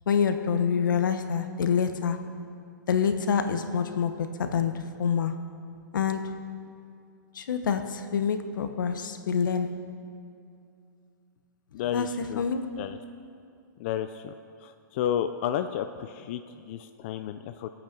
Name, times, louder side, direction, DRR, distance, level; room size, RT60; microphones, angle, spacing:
voice 1, 0.1-2.3 2.9-5.4 5.9-6.3 7.3-9.8 11.9-12.8, left 6 dB, 80° left, 8 dB, 1.2 m, -27 dB
voice 2, 11.7-12.4 12.8-13.0 13.8-14.3 14.6-17.7, left 10 dB, 40° left, 8 dB, 0.5 m, -32 dB
21.5 x 8.8 x 5.3 m, 2.5 s
hypercardioid pair, 160°, 10 cm